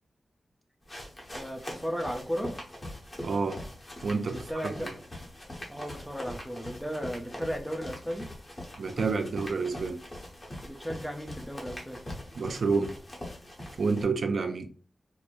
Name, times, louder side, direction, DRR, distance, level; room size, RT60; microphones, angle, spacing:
sound 1, 0.8-14.0, left 1 dB, 30° left, 1.1 m, -42 dB
voice 1, 1.3-2.5 4.3-4.9 5.7-8.3 10.6-12.0, equal, 5° left, 0.7 m, -35 dB
voice 2, 3.2-3.6 4.0-4.4 4.8-5.0 8.8-10.0 12.3-12.9 13.8-14.7, right 4 dB, 65° right, 0.4 m, -29 dB
4.7 x 2.1 x 2.5 m
wide cardioid pair, 120°, 0 cm